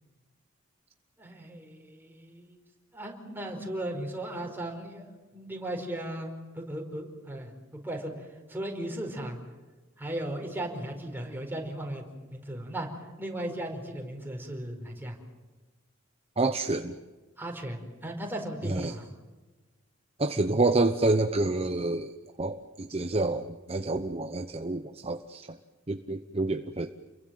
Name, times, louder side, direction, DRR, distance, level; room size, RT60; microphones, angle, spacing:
voice 1, 1.2-2.6 2.9-5.0 5.3-9.4 10.0-12.0 12.3-12.9 13.2-15.2 17.4-19.1, right 1 dB, 10° right, 2 dB, 4.8 m, -36 dB
voice 2, 16.4-17.0 18.6-18.9 20.2-22.1 22.4-25.6 25.9-26.9, right 2 dB, 30° right, 8 dB, 0.9 m, -28 dB
30.0 x 23.0 x 7.7 m, 1.3 s
head